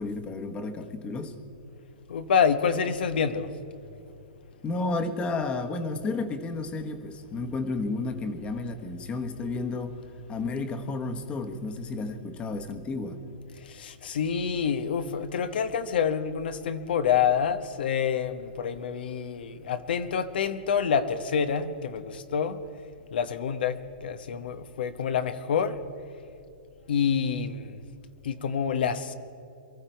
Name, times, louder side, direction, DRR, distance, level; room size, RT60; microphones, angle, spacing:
voice 1, 0.0-1.3 4.6-10.0 10.3-13.2, left 3 dB, 20° left, 7 dB, 1.2 m, -32 dB
voice 2, 2.1-3.5 13.7-22.6 23.1-25.8 26.9-27.8 28.2-29.1, left 7 dB, 75° left, 10 dB, 1.0 m, -27 dB
23.0 x 13.5 x 4.6 m, 2.6 s
hypercardioid pair, 140°, 5 cm